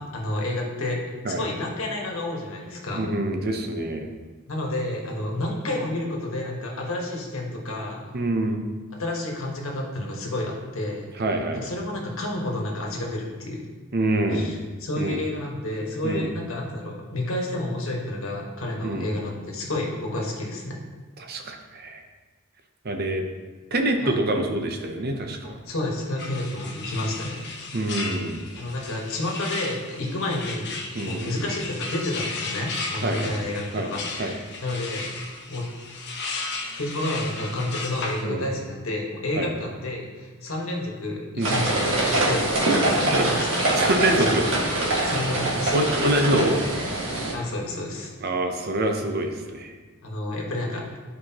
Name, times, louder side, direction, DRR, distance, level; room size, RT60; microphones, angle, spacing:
voice 1, 0.0-3.1 4.5-8.1 9.0-11.1 11.5-13.6 14.3-20.8 24.0-24.2 25.4-27.4 28.6-35.1 35.5-35.7 36.7-42.5 42.9-43.5 44.2-44.5 45.0-45.7 47.3-48.1 50.0-51.0, left 1 dB, 75° left, -1 dB, 1.4 m, -30 dB
voice 2, 2.9-4.1 8.1-8.6 11.2-11.6 13.9-14.5 15.0-15.2 16.0-16.3 18.8-19.1 21.2-22.0 22.8-23.2 23.7-25.6 27.7-28.5 30.9-31.4 33.0-33.3 33.7-33.9 34.2-34.3 38.2-38.5 39.3-39.5 41.4-41.5 43.2-43.3 43.7-44.4 45.0-45.2 45.7-46.6 48.2-49.7, right 1 dB, 50° right, 4 dB, 0.7 m, -26 dB
sound 1, 26.2-38.2, left 3 dB, 55° left, 0.9 m, -35 dB
sound 2, 41.4-47.3, right 1 dB, 65° right, 1.8 m, -23 dB
11.0 x 4.7 x 2.9 m, 1.3 s
head